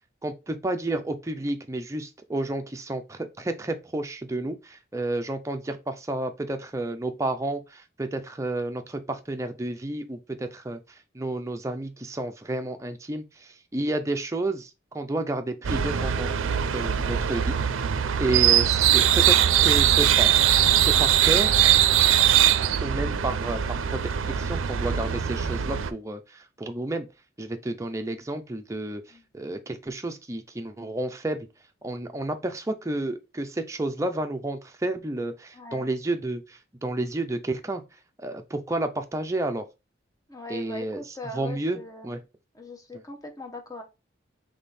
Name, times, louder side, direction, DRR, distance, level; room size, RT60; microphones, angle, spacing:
voice 1, 0.2-10.8 11.1-16.4 16.7-17.6 18.2-20.4 20.8-21.6 22.8-24.0 24.4-27.1 27.4-29.0 29.3-31.5 31.8-37.8 38.2-39.6 40.5-41.0 41.3-42.2, right 2 dB, 15° right, 0.5 m, -31 dB
sound 1, 15.6-25.9, right 10 dB, 90° right, 0.4 m, -21 dB
voice 2, 35.5-35.9 40.3-42.1 42.5-43.8, left 2 dB, 20° left, 0.8 m, -40 dB
3.6 x 3.4 x 4.0 m
head